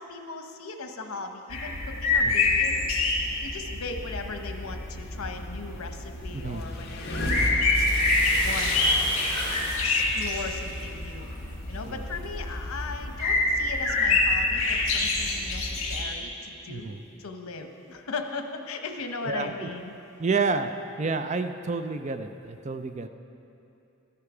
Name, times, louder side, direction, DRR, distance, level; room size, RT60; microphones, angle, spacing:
voice 1, 0.0-2.8 3.4-7.9 8.4-9.1 9.8-11.3 11.7-19.9, left 4 dB, 90° left, 6 dB, 0.9 m, -38 dB
sound 1, 1.5-16.0, left 3 dB, 70° left, 1.9 m, -27 dB
sound 2, 6.2-9.7, left 1 dB, 50° left, 1.1 m, -32 dB
Bathtub (filling or washing), 7.7-12.3 12.8-12.9, right 1 dB, 50° right, 2.6 m, -37 dB
voice 2, 16.7-17.0 19.2-19.7 20.2-20.7 21.0-23.1, right 4 dB, 35° right, 9 dB, 0.4 m, -29 dB
13.0 x 9.7 x 4.9 m, 2.8 s
head